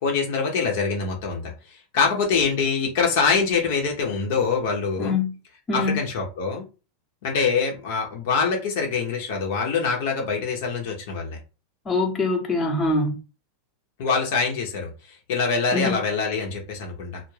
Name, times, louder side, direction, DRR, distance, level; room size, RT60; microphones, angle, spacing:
voice 1, 0.0-5.2 5.7-6.6 7.2-11.4 14.0-17.2, left 5 dB, 65° left, 0.8 m, -24 dB
voice 2, 5.0-5.3 5.7-6.0 11.9-13.2 15.7-16.0, left 3 dB, 25° left, 0.8 m, -23 dB
2.3 x 2.1 x 3.2 m
hypercardioid pair, 95°, 0 cm